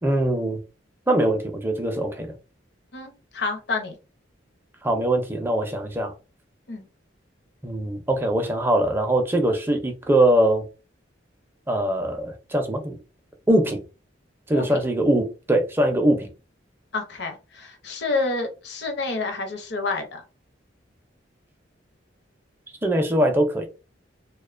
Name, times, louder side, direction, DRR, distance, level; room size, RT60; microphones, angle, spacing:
voice 1, 0.0-0.6 1.1-2.3 4.8-6.1 7.6-10.7 11.7-13.0 13.5-13.8 14.5-16.3 22.8-23.7, right 1 dB, 10° right, 0.4 m, -22 dB
voice 2, 2.9-4.0 6.7-6.9 14.5-14.8 16.9-20.2, left 3 dB, 60° left, 0.6 m, -29 dB
2.4 x 2.1 x 2.4 m
head